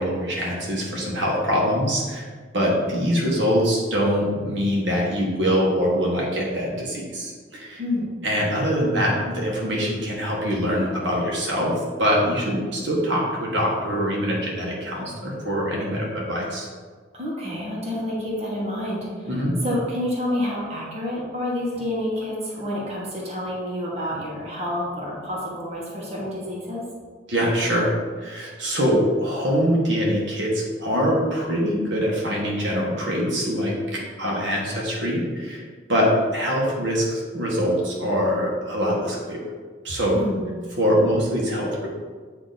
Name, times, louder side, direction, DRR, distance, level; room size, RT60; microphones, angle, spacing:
voice 1, 0.0-2.3 2.5-7.8 8.2-16.7 19.3-19.6 27.3-27.9 28.2-35.6 35.9-39.4 39.8-40.2 40.8-41.9, equal, 65° right, -3 dB, 1.2 m, -23 dB
voice 2, 7.7-8.1 17.1-26.8 40.1-40.5, left 1 dB, 35° right, -5 dB, 1.3 m, -29 dB
8.4 x 2.9 x 3.9 m, 1.5 s
head